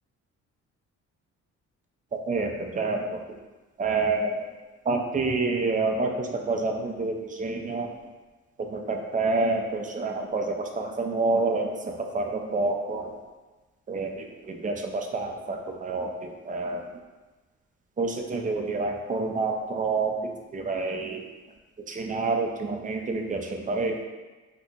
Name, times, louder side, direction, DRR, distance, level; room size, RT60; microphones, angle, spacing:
voice 1, 2.1-3.0 3.8-4.4 4.9-7.9 8.7-11.7 12.1-13.1 13.9-16.1 16.5-16.8 18.0-20.1 20.5-21.2 21.9-24.0, right 3 dB, 25° right, 2 dB, 0.4 m, -28 dB
2.8 x 2.4 x 3.7 m, 1.2 s
cardioid pair, 90°, 30 cm